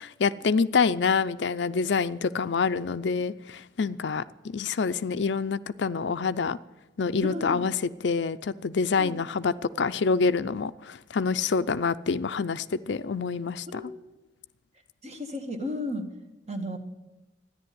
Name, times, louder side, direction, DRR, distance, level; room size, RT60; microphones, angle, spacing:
voice 1, 0.0-6.6 7.0-13.9, left 5 dB, 70° left, 0.5 m, -27 dB
voice 2, 7.2-7.6 9.0-9.2 13.7-13.9 15.0-16.1 16.5-16.8, left 1 dB, 35° right, 1.6 m, -33 dB
13.0 x 10.5 x 9.4 m
head